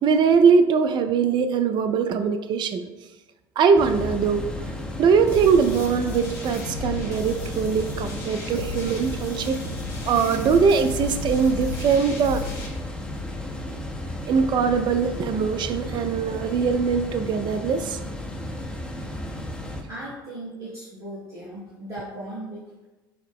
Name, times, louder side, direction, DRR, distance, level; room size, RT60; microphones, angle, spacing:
voice 1, 0.0-2.9 3.6-4.5 5.0-9.6 10.1-12.4 13.7-13.8 14.3-18.0, right 6 dB, 40° right, 8 dB, 0.4 m, -21 dB
sound 1, 3.8-19.8, left 1 dB, 10° left, 0.6 m, -34 dB
sound 2, 5.3-12.7, left 4 dB, 65° left, 1.0 m, -35 dB
voice 2, 19.9-22.8, right 1 dB, 80° right, -10 dB, 1.0 m, -37 dB
5.9 x 2.0 x 3.5 m, 1.1 s
figure-of-eight pair, 65°, 12 cm